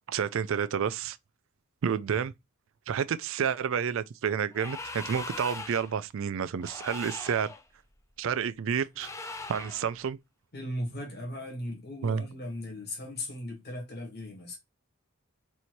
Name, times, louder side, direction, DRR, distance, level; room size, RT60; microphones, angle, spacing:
voice 1, 0.1-1.2 1.8-2.3 2.9-7.5 8.2-9.1 9.5-10.2 12.0-12.2, right 7 dB, 60° right, 0.4 m, -30 dB
sound 1, 4.5-6.0 6.6-7.6 9.0-9.9, left 3 dB, 15° left, 0.4 m, -40 dB
voice 2, 10.5-14.6, left 1 dB, 45° left, 1.7 m, -37 dB
4.3 x 2.7 x 4.5 m
head